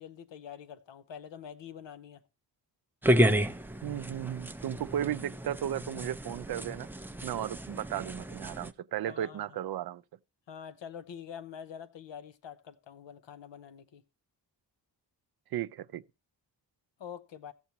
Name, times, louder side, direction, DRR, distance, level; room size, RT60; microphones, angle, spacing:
voice 1, 0.0-2.2 9.1-9.6 10.5-14.0 17.0-17.5, left 8 dB, 85° left, 0.8 m, -46 dB
sound 1, 3.0-8.7, equal, 5° right, 0.4 m, -31 dB
voice 2, 3.8-6.9 7.2-10.0 15.5-16.0, right 11 dB, 60° right, 0.5 m, -35 dB
16.0 x 7.0 x 2.9 m
wide cardioid pair, 85°, 43 cm